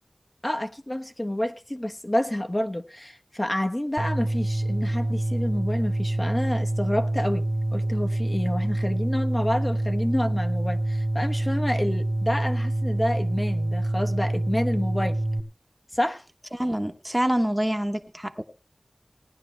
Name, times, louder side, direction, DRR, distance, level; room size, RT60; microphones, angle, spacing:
voice 1, 0.4-7.4 7.7-15.2 15.9-16.2, left 1 dB, 30° left, 1.1 m, -28 dB
sound 1, 4.0-15.4, right 1 dB, 60° right, 1.1 m, -26 dB
voice 2, 16.5-18.4, equal, 15° right, 1.0 m, -26 dB
18.0 x 10.5 x 3.3 m
wide cardioid pair, 45°, 0 cm